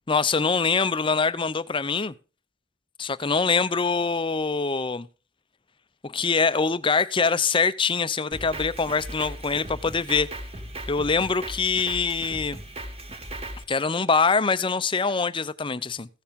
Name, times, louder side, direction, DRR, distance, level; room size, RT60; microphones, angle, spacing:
voice 1, 0.1-2.1 3.0-5.1 6.0-10.3 10.9-12.6 13.7-16.1, left 4 dB, 25° left, 0.6 m, -24 dB
Drum kit, 8.3-13.6, right 1 dB, 35° right, 2.4 m, -37 dB
15.5 x 7.2 x 5.2 m
head